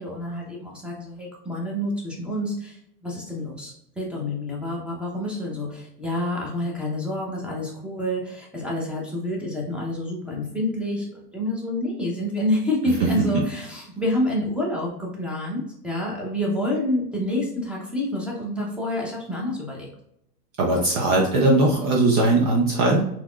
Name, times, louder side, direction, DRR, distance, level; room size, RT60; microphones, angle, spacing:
voice 1, 0.0-19.9, left 1 dB, ahead, -3 dB, 0.7 m, -28 dB
voice 2, 20.6-23.1, right 2 dB, 25° right, -1 dB, 0.4 m, -19 dB
4.1 x 3.0 x 2.4 m, 0.75 s
hypercardioid pair, 125°, 49 cm